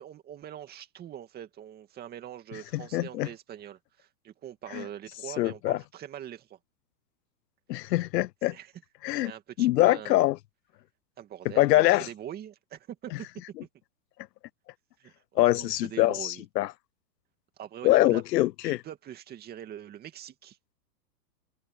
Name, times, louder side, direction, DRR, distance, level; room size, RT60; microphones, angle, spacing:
voice 1, 0.0-6.6 8.5-8.7 9.1-10.2 11.2-13.3 15.0-16.5 17.6-18.2 18.6-20.6, right 10 dB, 20° right, 2.3 m, -43 dB
voice 2, 2.7-3.3 4.7-4.8 5.4-5.8 7.7-8.6 9.0-9.3 9.6-10.4 11.6-12.1 15.4-16.7 17.8-18.8, left 16 dB, 85° left, 0.6 m, -24 dB
hypercardioid pair, 150°, 48 cm